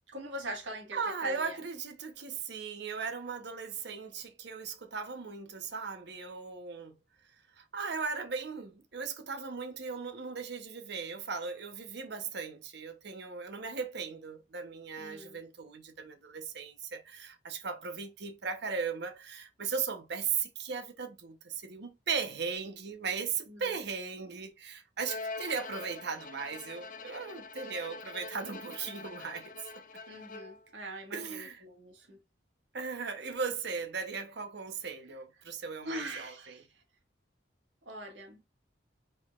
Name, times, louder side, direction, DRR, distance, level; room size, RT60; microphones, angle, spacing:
voice 1, 0.1-1.6 15.0-15.4 23.5-23.7 30.1-32.2 35.8-36.7 37.8-38.4, right 1 dB, 85° right, 1.7 m, -42 dB
voice 2, 0.9-7.0 7.6-29.5 31.1-31.6 32.7-36.6, right 5 dB, 65° right, 0.9 m, -37 dB
Bowed string instrument, 25.0-30.7, left 3 dB, 45° left, 0.6 m, -44 dB
5.2 x 3.9 x 2.4 m
head